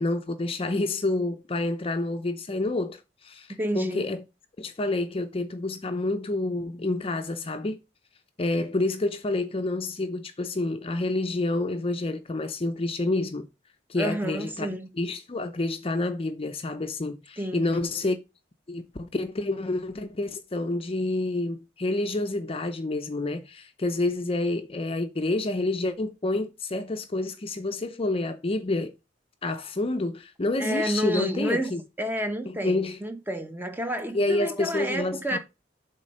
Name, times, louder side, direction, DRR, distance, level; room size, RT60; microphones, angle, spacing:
voice 1, 0.0-4.2 4.6-7.8 8.4-13.5 13.9-14.7 15.0-18.2 18.7-28.9 29.4-31.8 32.5-33.0 34.1-35.4, left 2 dB, 30° left, 0.6 m, -28 dB
voice 2, 3.6-4.0 14.0-14.9 17.4-17.7 30.6-31.7 32.0-35.4, equal, 10° right, 1.0 m, -30 dB
7.4 x 3.7 x 5.4 m
head